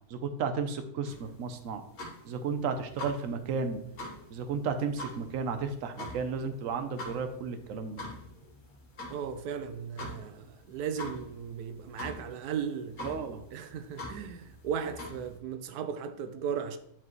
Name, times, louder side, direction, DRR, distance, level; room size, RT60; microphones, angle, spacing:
voice 1, 0.1-1.8 2.2-3.8 4.3-8.0 13.0-13.5, right 5 dB, 65° right, 1.1 m, -33 dB
sound 1, 1.0-15.4, left 1 dB, 75° left, 1.9 m, -45 dB
voice 2, 9.1-13.1 13.5-16.8, right 7 dB, 90° right, 1.2 m, -36 dB
10.5 x 4.9 x 3.1 m
omnidirectional pair, 1.6 m